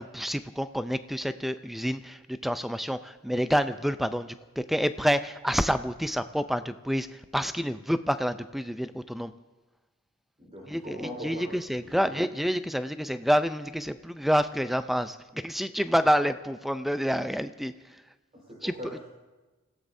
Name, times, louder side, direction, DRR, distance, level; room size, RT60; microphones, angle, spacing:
voice 1, 0.0-4.3 4.7-7.1 7.3-9.3 10.7-17.7 18.6-18.7, equal, ahead, 11 dB, 0.4 m, -28 dB
voice 2, 10.4-11.5 11.8-12.2 18.3-19.0, equal, 30° right, -5 dB, 4.2 m, -41 dB
28.0 x 16.5 x 2.7 m, 1.2 s
head